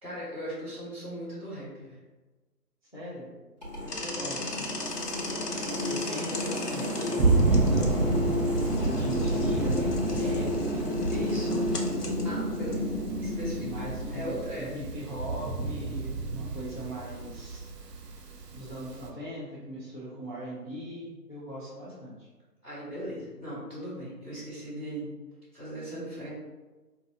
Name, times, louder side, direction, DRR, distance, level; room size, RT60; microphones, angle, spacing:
voice 1, 0.0-2.0 11.1-11.6 12.2-14.7 22.6-25.1 25.5-26.3, right 1 dB, 5° right, -17 dB, 1.3 m, -38 dB
voice 2, 2.9-3.3 3.8-4.7 5.5-8.0 8.7-11.7 13.6-17.7 18.4-22.3, equal, 30° left, -9 dB, 0.6 m, -40 dB
sound 1, 3.6-14.7, left 1 dB, 25° right, 0.8 m, -31 dB
sound 2, 3.9-14.3, left 2 dB, 70° left, 0.9 m, -40 dB
Thunder, 7.2-19.1, right 3 dB, 75° right, 0.7 m, -30 dB
4.5 x 2.7 x 3.7 m, 1.2 s
figure-of-eight pair, 165°, 48 cm